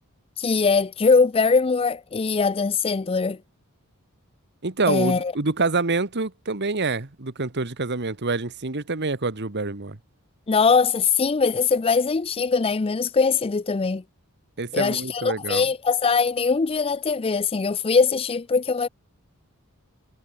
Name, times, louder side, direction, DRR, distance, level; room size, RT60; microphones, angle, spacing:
voice 1, 0.4-3.4 4.9-5.3 10.5-14.0 14.7-18.9, left 5 dB, 25° left, 0.4 m, -21 dB
voice 2, 4.6-10.0 14.6-15.7, right 3 dB, 50° right, 1.5 m, -26 dB
head